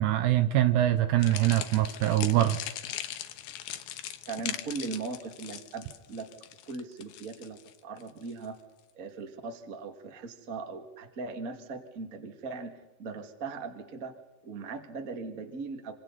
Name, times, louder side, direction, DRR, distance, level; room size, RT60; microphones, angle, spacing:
voice 1, 0.0-2.6, right 13 dB, 75° right, 11 dB, 2.7 m, -24 dB
sound 1, 1.2-8.5, left 11 dB, 70° left, 2.5 m, -40 dB
voice 2, 4.2-6.3 6.6-8.6 8.9-14.2 14.4-15.9, right 4 dB, 30° right, 5 dB, 1.5 m, -39 dB
28.5 x 26.5 x 4.2 m, 1.1 s
omnidirectional pair, 5.2 m